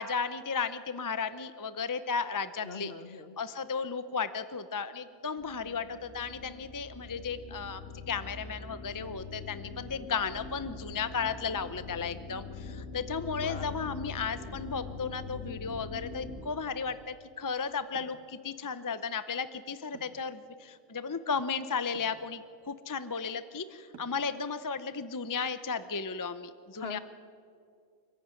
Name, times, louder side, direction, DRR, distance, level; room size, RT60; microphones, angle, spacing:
voice 1, 0.0-2.9 3.4-7.8 8.1-27.0, left 5 dB, 25° left, 12 dB, 0.5 m, -34 dB
voice 2, 2.6-3.4 13.3-13.7 26.8-27.0, left 5 dB, 50° left, 10 dB, 1.3 m, -41 dB
sound 1, 5.4-16.5, left 4 dB, 65° left, 2.7 m, -43 dB
sound 2, 17.9-18.2 19.9-20.3 21.9-22.2 23.9-24.3, right 6 dB, 80° right, 2.1 m, -50 dB
26.5 x 15.0 x 9.7 m, 2.4 s
omnidirectional pair, 1.4 m